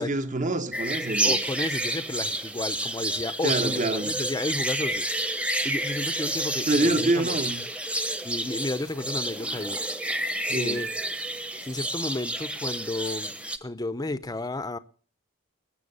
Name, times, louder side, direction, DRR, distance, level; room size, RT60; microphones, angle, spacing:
voice 1, 0.0-1.4 3.4-4.1 6.7-7.6 10.5-10.8, right 2 dB, 40° right, 1.1 m, -26 dB
sound 1, 0.7-13.6, right 1 dB, 5° right, 0.9 m, -29 dB
voice 2, 1.2-7.4 8.2-9.8 10.5-10.9 11.6-13.3 13.6-14.8, left 2 dB, 20° left, 0.6 m, -32 dB
20.5 x 7.8 x 6.8 m
head